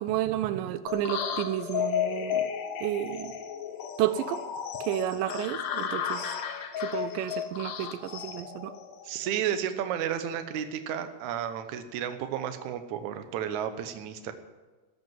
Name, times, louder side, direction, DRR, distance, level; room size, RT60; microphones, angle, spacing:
voice 1, 0.0-2.5 2.8-3.3 4.0-4.4 4.8-6.2 6.8-8.7, right 12 dB, 85° right, 13 dB, 1.9 m, -31 dB
sound 1, 0.9-9.3, left 9 dB, 65° left, 2.4 m, -33 dB
voice 2, 9.0-14.3, right 9 dB, 70° right, 8 dB, 1.9 m, -32 dB
13.5 x 8.2 x 9.1 m, 1.3 s
omnidirectional pair, 4.6 m